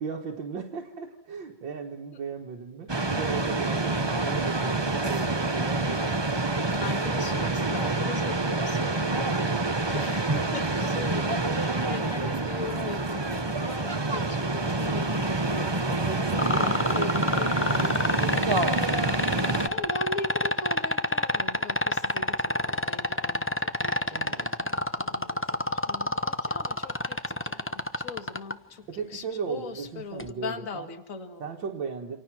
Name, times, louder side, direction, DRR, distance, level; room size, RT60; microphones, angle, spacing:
voice 1, 0.0-6.1 11.7-12.5 15.9-18.8 24.1-24.7 28.9-30.9 31.4-32.2, right 6 dB, 80° right, 1 dB, 2.3 m, -37 dB
sound 1, 2.9-19.7, right 2 dB, 20° right, 0.9 m, -27 dB
voice 2, 6.5-16.5 16.9-17.7 19.7-31.7, left 4 dB, 45° left, 7 dB, 2.2 m, -40 dB
sound 2, 16.4-28.5 30.2-30.3, left 1 dB, 20° left, 0.3 m, -26 dB
29.0 x 27.0 x 6.2 m, 0.81 s
omnidirectional pair, 2.0 m